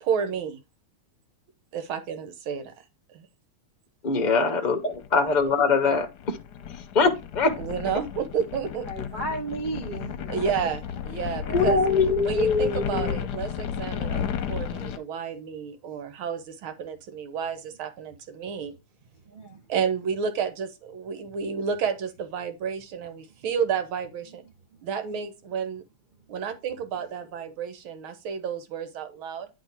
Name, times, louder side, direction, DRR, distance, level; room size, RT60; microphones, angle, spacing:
voice 1, 0.0-0.6 1.7-2.7 3.1-3.3 7.6-8.9 10.3-11.8 12.2-18.7 19.7-24.4 24.8-25.8 26.3-29.5, right 7 dB, 80° right, 1.8 m, -31 dB
voice 2, 4.0-6.4 6.9-7.6 7.9-8.0 11.5-13.1, left 4 dB, 35° left, 0.7 m, -23 dB
sound 1, 4.9-15.0, left 8 dB, 65° left, 1.2 m, -33 dB
voice 3, 8.9-10.5 11.2-11.6 19.2-19.6, right 2 dB, 45° right, 0.6 m, -35 dB
9.8 x 3.3 x 4.4 m
omnidirectional pair, 2.2 m